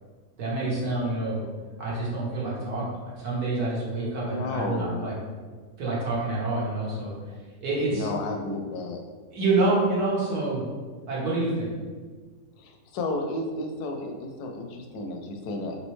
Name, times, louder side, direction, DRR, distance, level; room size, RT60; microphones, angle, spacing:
voice 1, 0.4-1.4 1.8-5.1 5.8-8.1 9.3-10.7 11.1-11.7, right 2 dB, 75° right, -6 dB, 1.6 m, -27 dB
voice 2, 4.2-5.1 7.9-9.0 12.6-15.8, left 2 dB, 80° left, 3 dB, 1.1 m, -32 dB
4.1 x 3.2 x 3.1 m, 1.5 s
omnidirectional pair, 1.6 m